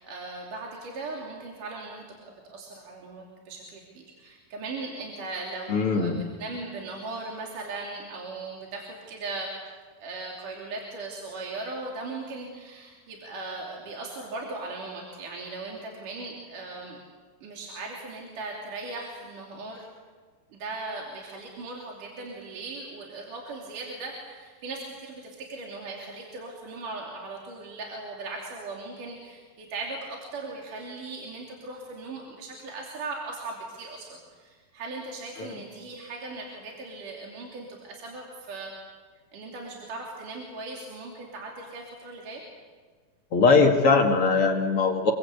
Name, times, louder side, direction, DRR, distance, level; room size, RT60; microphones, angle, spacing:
voice 1, 0.0-6.1 6.4-9.5 10.0-17.0 17.4-19.9 20.5-38.7 39.3-42.4, right 3 dB, 60° right, -1 dB, 4.4 m, -38 dB
voice 2, 5.7-6.2 35.4-35.5 43.3-45.1, left 4 dB, 45° left, 2 dB, 2.5 m, -21 dB
27.5 x 22.5 x 8.4 m, 1.6 s
omnidirectional pair, 4.2 m